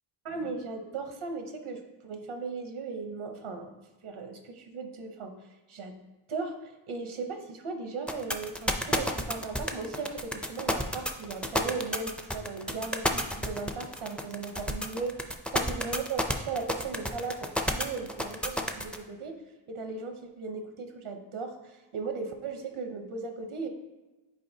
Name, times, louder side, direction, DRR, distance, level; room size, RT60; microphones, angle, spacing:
voice 1, 0.2-3.7 4.0-5.9 6.3-19.4 19.7-23.7, right 4 dB, 85° right, 5 dB, 0.9 m, -37 dB
sound 1, 8.1-19.0, left 1 dB, ahead, 0.4 m, -30 dB
9.3 x 4.3 x 2.7 m, 1.2 s
wide cardioid pair, 85°, 48 cm